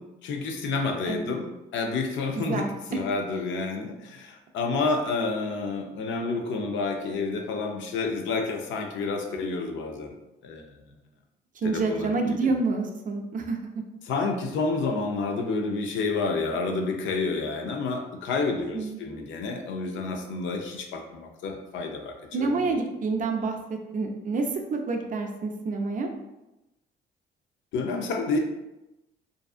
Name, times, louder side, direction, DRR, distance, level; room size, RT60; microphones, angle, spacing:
voice 1, 0.0-10.1 10.4-11.0 11.6-12.6 14.0-22.8 27.7-28.4, left 3 dB, 75° left, 3 dB, 0.5 m, -29 dB
voice 2, 2.4-2.7 11.6-13.6 18.7-19.0 22.3-26.1, right 3 dB, 40° right, 3 dB, 0.4 m, -28 dB
2.6 x 2.3 x 2.4 m, 0.97 s
cardioid pair, 90°, 20 cm